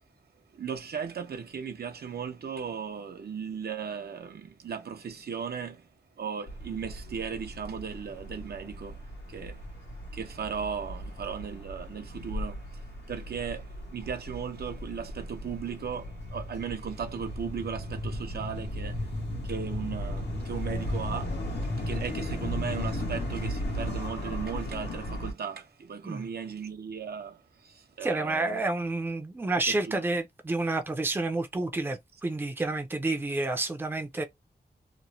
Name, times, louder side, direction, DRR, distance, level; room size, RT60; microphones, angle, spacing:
voice 1, 0.5-5.9 6.2-9.7 10.1-12.7 13.1-19.1 19.4-21.4 21.9-28.6 29.7-30.0, right 7 dB, 70° right, 0.6 m, -37 dB
sound 1, 6.5-25.3, left 1 dB, 90° left, 1.3 m, -36 dB
voice 2, 28.0-34.2, right 2 dB, 10° right, 0.4 m, -29 dB
3.0 x 2.1 x 2.6 m
wide cardioid pair, 125°, 17 cm